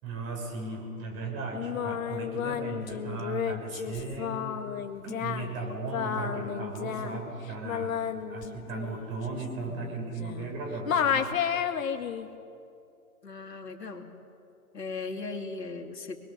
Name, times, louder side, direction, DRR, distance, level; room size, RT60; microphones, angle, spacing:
voice 1, 0.0-7.9 8.2-11.3, right 3 dB, 30° right, 1 dB, 6.5 m, -36 dB
Singing, 1.5-10.6 10.9-12.3, left 8 dB, 55° left, 1.9 m, -32 dB
voice 2, 13.2-14.1 14.7-16.2, left 3 dB, 85° left, 4 dB, 2.8 m, -37 dB
26.5 x 21.5 x 7.2 m, 2.6 s
hypercardioid pair, 130°, 48 cm